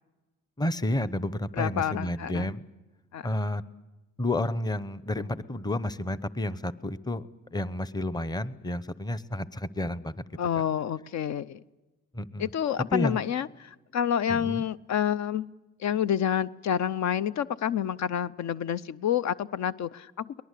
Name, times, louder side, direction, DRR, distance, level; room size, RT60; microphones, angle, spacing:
voice 1, 0.6-2.7 3.2-3.6 4.2-10.1 12.1-12.5 12.9-13.2 14.3-14.6, left 1 dB, 15° left, 15 dB, 0.9 m, -31 dB
voice 2, 1.5-2.5 3.1-3.4 10.4-11.6 12.4-15.5 15.8-20.4, left 9 dB, 65° left, 15 dB, 0.7 m, -28 dB
23.0 x 19.5 x 8.4 m, 1.1 s
cardioid pair, 90°, 30 cm